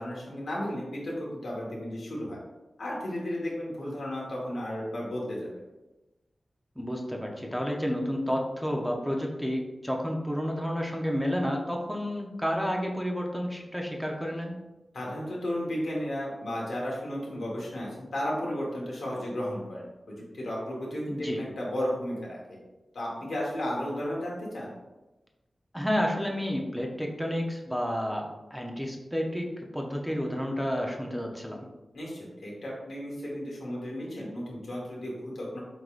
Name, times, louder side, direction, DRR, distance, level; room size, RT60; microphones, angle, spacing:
voice 1, 0.0-2.4 2.8-5.5 14.9-22.6 22.9-24.7 31.9-35.6, equal, 70° left, -4 dB, 1.2 m, -34 dB
voice 2, 6.8-14.6 21.1-21.4 25.7-31.6, equal, ahead, 0 dB, 0.7 m, -30 dB
4.7 x 3.8 x 2.4 m, 1.1 s
wide cardioid pair, 85°, 0 cm